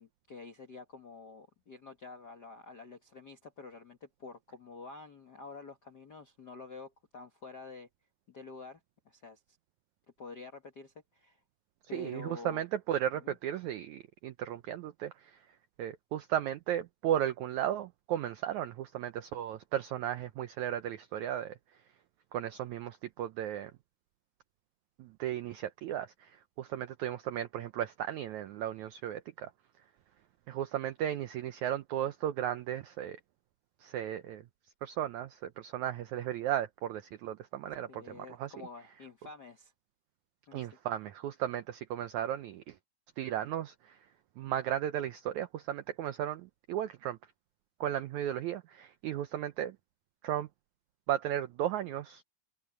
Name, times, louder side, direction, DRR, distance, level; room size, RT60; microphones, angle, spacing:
voice 1, 0.0-7.9 8.3-8.8 9.0-9.6 10.2-11.4 11.9-12.6 13.1-13.4 37.9-39.7 40.5-40.7, left 4 dB, 60° left, 1.0 m, -48 dB
voice 2, 11.9-15.4 15.8-21.5 22.3-23.7 25.0-29.5 30.5-33.2 33.8-34.4 34.8-38.5 40.5-42.7 43.2-44.0 44.4-47.2 47.8-49.8 50.2-50.5 51.1-52.2, right 11 dB, 80° right, 1.7 m, -35 dB
open air
omnidirectional pair, 4.2 m